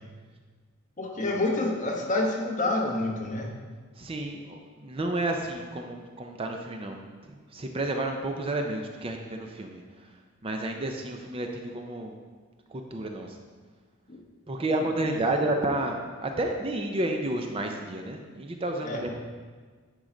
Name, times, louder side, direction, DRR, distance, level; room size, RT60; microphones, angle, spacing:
voice 1, 1.0-3.5 14.1-14.2 14.7-15.5 18.8-19.1, left 2 dB, 35° left, -1 dB, 1.1 m, -29 dB
voice 2, 4.0-7.0 7.5-9.8 10.4-12.1 12.7-13.4 14.5-19.2, right 2 dB, 25° right, 3 dB, 0.5 m, -31 dB
10.0 x 4.7 x 3.8 m, 1.5 s
head